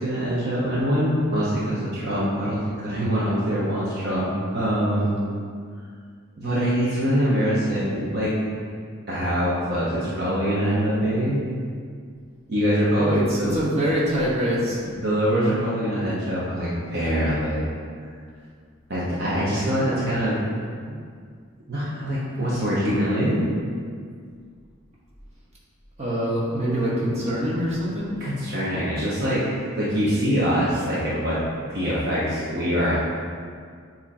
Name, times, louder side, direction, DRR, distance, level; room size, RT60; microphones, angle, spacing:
voice 1, 0.0-2.6 2.8-5.3 6.4-8.3 9.1-11.4 12.5-13.6 15.0-17.7 18.9-20.4 20.8-20.9 21.7-23.5 28.2-29.4 29.8-31.4 31.7-32.9, equal, 50° right, -9 dB, 1.1 m, -24 dB
voice 2, 13.0-14.8 26.0-28.1, equal, 30° right, -8 dB, 1.4 m, -24 dB
7.5 x 3.0 x 4.2 m, 2.1 s
head